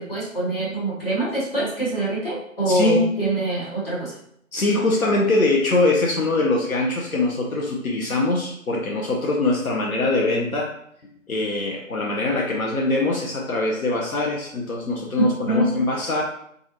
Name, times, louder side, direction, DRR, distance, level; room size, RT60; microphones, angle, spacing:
voice 1, 0.0-4.2 15.2-15.7, right 2 dB, 45° left, -8 dB, 1.1 m, -24 dB
voice 2, 2.7-3.0 4.5-10.7 11.3-16.2, left 2 dB, 85° left, -1 dB, 0.6 m, -22 dB
2.4 x 2.0 x 2.7 m, 0.69 s
figure-of-eight pair, 170°, 42 cm